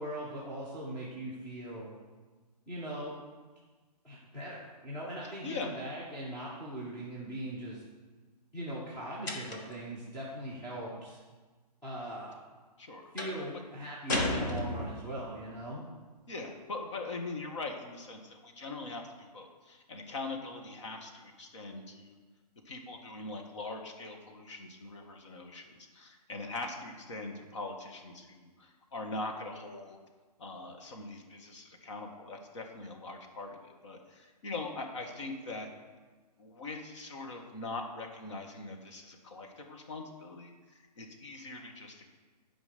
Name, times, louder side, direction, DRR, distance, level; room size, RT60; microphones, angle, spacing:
voice 1, 0.0-1.9 2.7-3.2 4.0-7.8 8.5-11.2 11.8-12.3 13.1-15.8, right 1 dB, 5° left, -7 dB, 1.1 m, -40 dB
sound 1, 9.3-9.8 13.2-13.5 14.1-15.2, left 1 dB, 30° left, 1.1 m, -33 dB
voice 2, 16.3-22.1 22.6-25.6 25.9-30.0 30.4-35.7 36.4-40.5 41.0-42.1, left 3 dB, 45° left, 3 dB, 1.5 m, -42 dB
11.0 x 5.1 x 6.7 m, 1.4 s
hypercardioid pair, 170°, 21 cm